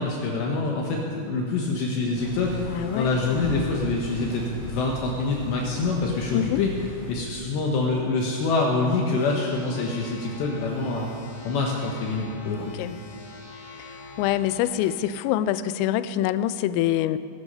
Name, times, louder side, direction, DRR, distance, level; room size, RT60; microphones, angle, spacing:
voice 1, 0.0-2.6 2.9-6.7 7.1-12.7, left 3 dB, 70° left, -1 dB, 3.2 m, -26 dB
sound 1, 2.1-7.1, left 2 dB, 25° left, 2.9 m, -37 dB
voice 2, 2.7-3.5 6.3-6.6 12.6-13.0 14.2-17.2, left 12 dB, 85° left, 14 dB, 3.2 m, -25 dB
sound 2, 9.2-14.9, left 2 dB, 50° left, 3.1 m, -43 dB
19.5 x 13.5 x 5.5 m, 2.4 s
omnidirectional pair, 5.8 m